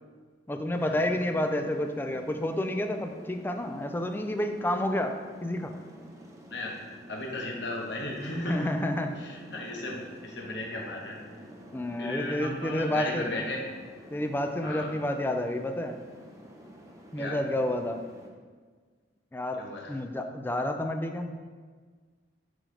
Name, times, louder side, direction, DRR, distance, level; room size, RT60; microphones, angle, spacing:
voice 1, 0.5-5.1 5.4-5.7 8.3-9.2 11.7-13.3 14.1-16.0 17.1-18.0 19.3-19.6 19.9-21.4, left 1 dB, 10° left, 6 dB, 0.4 m, -30 dB
sound 1, 0.7-18.3, equal, 20° right, 0.7 m, -49 dB
voice 2, 7.1-8.7 9.2-11.2 12.0-13.6 14.6-14.9 17.2-17.4 19.6-19.9, left 1 dB, 70° left, -1 dB, 1.2 m, -35 dB
6.2 x 4.9 x 3.3 m, 1.5 s
head